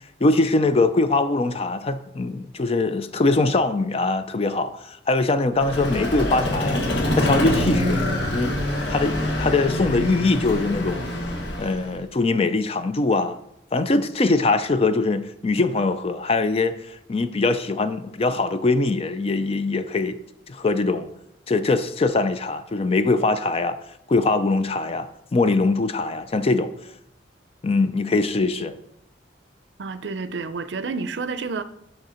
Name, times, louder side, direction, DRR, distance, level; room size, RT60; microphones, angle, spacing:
voice 1, 0.2-6.8 7.1-8.6 8.9-11.1 11.6-13.4 13.7-20.2 20.5-21.1 21.5-23.8 24.1-26.7 27.6-28.7, left 3 dB, 35° left, 0.4 m, -22 dB
Vehicle, 5.6-12.0, left 1 dB, 80° left, 1.5 m, -25 dB
voice 2, 29.8-31.6, right 4 dB, 70° right, 0.5 m, -29 dB
6.3 x 6.0 x 4.3 m
head